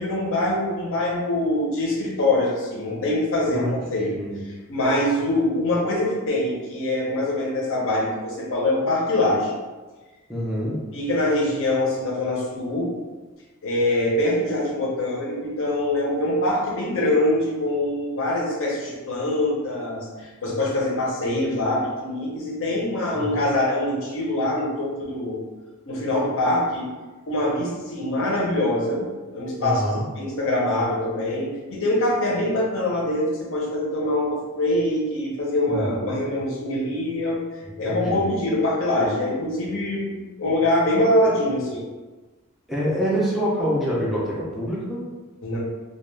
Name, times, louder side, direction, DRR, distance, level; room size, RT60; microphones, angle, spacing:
voice 1, 0.0-4.2 4.7-9.5 10.9-12.9 13.6-25.4 25.9-26.9 27.3-29.8 30.1-37.4 37.8-41.8 45.4-45.6, left 1 dB, 65° left, -3 dB, 0.7 m, -24 dB
voice 2, 3.5-4.4 10.3-11.0 23.1-23.5 29.6-30.1 35.7-36.1 37.8-38.3 42.7-45.0, equal, ahead, -7 dB, 0.5 m, -26 dB
2.3 x 2.2 x 3.1 m, 1.3 s
head